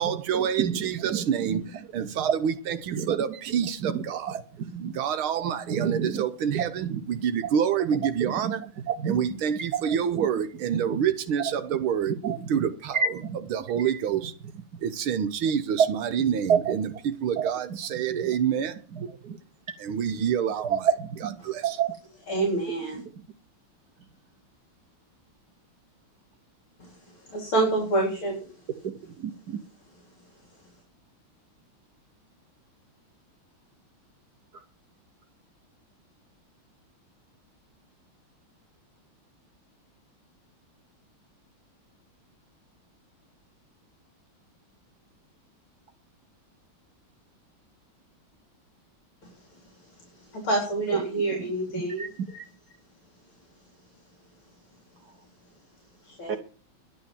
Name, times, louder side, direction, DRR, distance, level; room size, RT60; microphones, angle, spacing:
voice 1, 0.0-4.4 4.7-14.3 14.8-19.2 19.8-20.9 21.2-22.0, right 8 dB, 75° right, 1.8 m, -28 dB
voice 2, 5.7-6.2 6.5-6.7 6.9-7.0 8.2-8.5 9.0-9.2 10.9-11.0 12.2-12.3 12.9-13.3 15.8-15.9 16.5-16.6 18.1-18.3 19.2-19.4 20.6-21.3 29.2-29.6 51.8-52.4 56.3-56.4, right 6 dB, 55° right, 1.3 m, -27 dB
voice 3, 22.3-23.0 26.8-26.9 27.3-28.5 50.3-52.1 52.3-52.4 56.1-56.4, right 2 dB, 70° left, 4.9 m, -27 dB
11.5 x 9.1 x 7.3 m
omnidirectional pair, 2.3 m